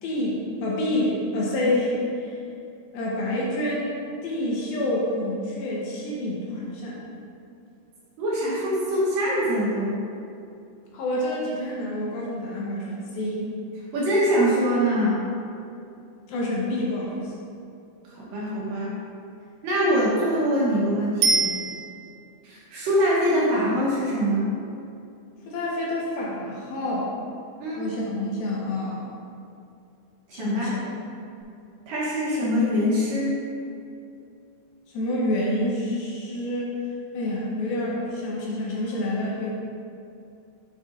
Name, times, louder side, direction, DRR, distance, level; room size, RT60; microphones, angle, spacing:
voice 1, 0.0-2.4 2.9-4.0 4.2-7.0 10.9-13.5 16.3-17.3 25.5-27.1 27.8-29.0 30.3-30.8 31.2-31.3 34.9-36.7 37.1-39.5, left 1 dB, 75° left, -5 dB, 2.6 m, -28 dB
voice 2, 8.2-10.0 13.9-15.2 18.1-18.9 19.6-21.5 22.4-24.5 27.6-27.8 30.3-30.8 31.9-33.4, equal, 70° right, -7 dB, 2.5 m, -23 dB
Bicycle bell, 21.2-22.3 31.4-31.5, right 3 dB, 85° right, 2.0 m, -24 dB
7.5 x 6.8 x 2.6 m, 2.6 s
omnidirectional pair, 4.6 m